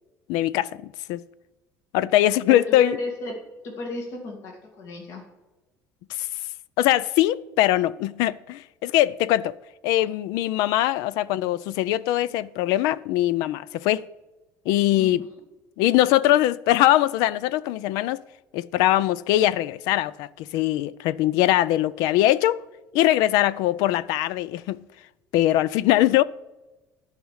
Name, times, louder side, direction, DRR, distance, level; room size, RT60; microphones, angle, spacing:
voice 1, 0.3-0.8 1.1-1.2 1.9-3.0 6.1-6.3 6.8-9.5 9.8-14.1 14.7-15.2 15.8-18.2 18.5-22.6 22.9-24.8 25.3-26.2, left 14 dB, 80° left, 0.4 m, -21 dB
voice 2, 2.5-3.3 3.6-5.2 15.0-15.1, left 2 dB, 50° left, 2.1 m, -34 dB
11.0 x 5.1 x 8.0 m
cardioid pair, 175°, 6 cm